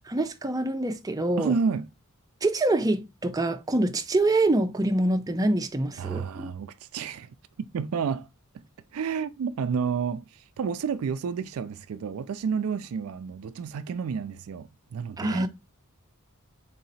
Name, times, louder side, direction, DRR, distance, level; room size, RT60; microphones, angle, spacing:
voice 1, 0.1-1.5 2.4-6.5 15.2-15.5, right 2 dB, 15° right, 0.5 m, -25 dB
voice 2, 1.4-1.9 6.0-8.3 8.5-8.6 8.9-15.5, right 6 dB, 70° right, 0.4 m, -30 dB
4.0 x 2.8 x 3.9 m
head